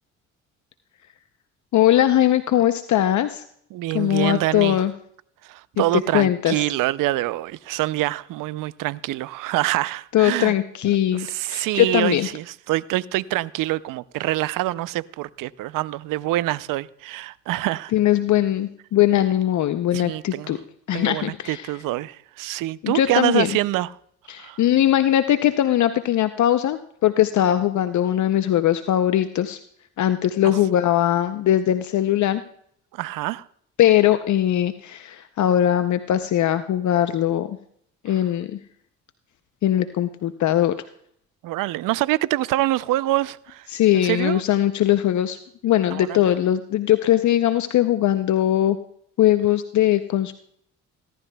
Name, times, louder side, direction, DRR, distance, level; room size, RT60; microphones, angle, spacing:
voice 1, 1.7-3.4 3.9-4.9 5.8-6.6 10.1-12.3 17.9-20.6 20.9-21.7 22.8-23.6 24.3-29.6 30.0-32.4 33.8-37.6 38.0-38.6 39.6-40.9 43.7-48.8 49.2-50.3, left 12 dB, 60° left, 0.7 m, -20 dB
voice 2, 3.7-4.8 5.4-10.5 11.1-17.9 19.9-20.5 20.9-23.9 24.4-24.6 32.9-33.5 41.4-43.7 43.9-44.4 45.9-46.2, right 16 dB, 70° right, 0.5 m, -25 dB
17.5 x 12.0 x 2.3 m
supercardioid pair, 60°, 33 cm